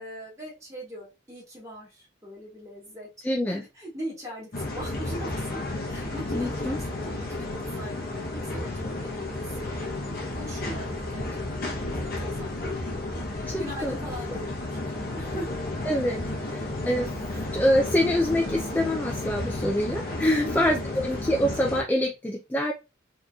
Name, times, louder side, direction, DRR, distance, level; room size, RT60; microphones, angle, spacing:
voice 1, 0.0-3.1 3.5-5.6 5.9-15.5 16.3-16.6 17.3-17.6 20.4-20.7, equal, 15° right, -4 dB, 1.6 m, -41 dB
voice 2, 3.2-3.6 6.3-6.8 13.5-13.9 15.9-16.2 16.5-16.6 16.9-17.1 17.5-22.7, equal, 10° left, 1 dB, 0.4 m, -25 dB
sound 1, 4.5-21.8, left 2 dB, 50° left, 0.8 m, -32 dB
3.8 x 2.9 x 2.3 m, 0.26 s
head